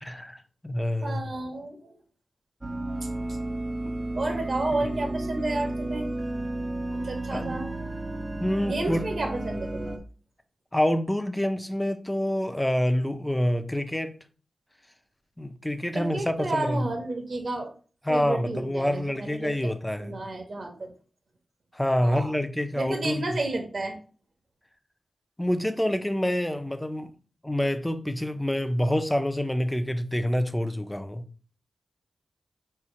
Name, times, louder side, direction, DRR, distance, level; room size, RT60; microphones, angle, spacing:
voice 1, 0.0-1.2 7.3-7.6 8.4-9.1 10.7-14.2 15.4-16.9 18.1-20.1 21.7-23.4 25.4-27.1 27.4-31.2, left 1 dB, 10° left, 0.6 m, -27 dB
voice 2, 1.0-2.0 4.1-6.1 6.9-7.7 8.6-9.9 15.9-17.7 18.1-19.5 20.0-20.9 22.0-22.4 22.7-24.0, right 2 dB, 65° right, 1.2 m, -31 dB
sound 1, 2.6-10.0, right 1 dB, 25° right, 0.7 m, -32 dB
4.4 x 2.4 x 4.8 m
cardioid pair, 45°, 0 cm